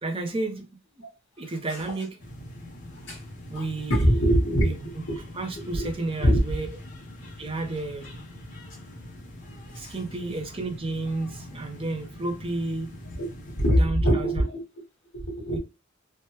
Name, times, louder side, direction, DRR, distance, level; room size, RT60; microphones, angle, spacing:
voice 1, 0.0-0.7 1.4-2.2 3.5-4.2 4.6-4.8 5.1-6.7 7.4-8.2 9.7-12.9 13.8-14.4 15.5-15.6, right 2 dB, 25° right, 0.7 m, -32 dB
sound 1, 2.2-13.7, left 1 dB, 40° left, 0.7 m, -43 dB
voice 2, 3.9-5.2 5.6-5.9 6.2-6.4 9.7-9.9 13.2-13.3 13.6-14.6 15.1-15.6, equal, 65° left, 1.3 m, -23 dB
3.2 x 2.2 x 2.9 m
head